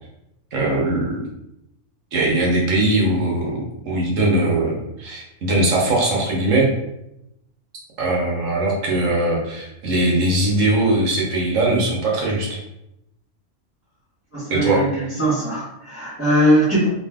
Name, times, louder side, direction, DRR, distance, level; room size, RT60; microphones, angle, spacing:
voice 1, 0.5-1.2 2.1-6.7 8.0-12.6 14.5-14.8, right 2 dB, 70° right, -2 dB, 1.3 m, -20 dB
voice 2, 14.3-16.9, right 1 dB, 10° left, -10 dB, 1.1 m, -20 dB
3.1 x 2.6 x 3.5 m, 0.86 s
omnidirectional pair, 1.4 m